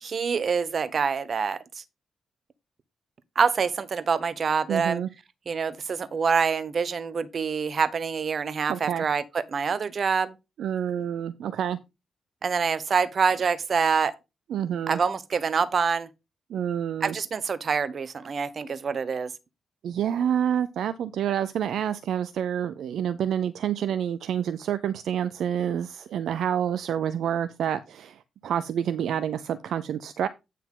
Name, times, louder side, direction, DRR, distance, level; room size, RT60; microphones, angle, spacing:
voice 1, 0.0-1.8 3.3-5.0 5.5-10.3 12.4-14.1 14.9-16.1 17.0-19.3, right 5 dB, 55° right, 1.0 m, -26 dB
voice 2, 4.7-5.1 8.7-9.0 10.6-11.8 14.5-15.0 16.5-17.2 19.8-30.3, right 9 dB, 70° right, 0.5 m, -28 dB
9.4 x 5.5 x 3.8 m
hypercardioid pair, 40°, 0 cm